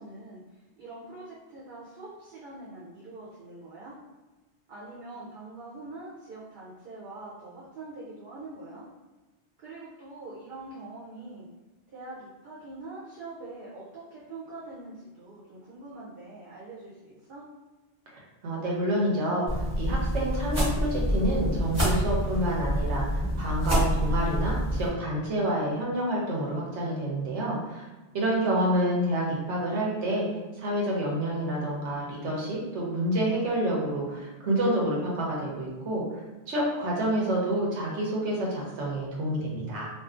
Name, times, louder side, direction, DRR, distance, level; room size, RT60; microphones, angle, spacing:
voice 1, 0.0-4.0 4.7-8.9 9.6-11.5 11.9-17.5, right 2 dB, 60° right, -7 dB, 0.8 m, -44 dB
voice 2, 18.4-27.8 28.1-30.3 30.6-39.9, right 1 dB, 85° right, -3 dB, 1.1 m, -28 dB
sound 1, 19.5-24.9, equal, 15° right, 0.8 m, -27 dB
2.6 x 2.4 x 2.4 m, 1.2 s
omnidirectional pair, 1.2 m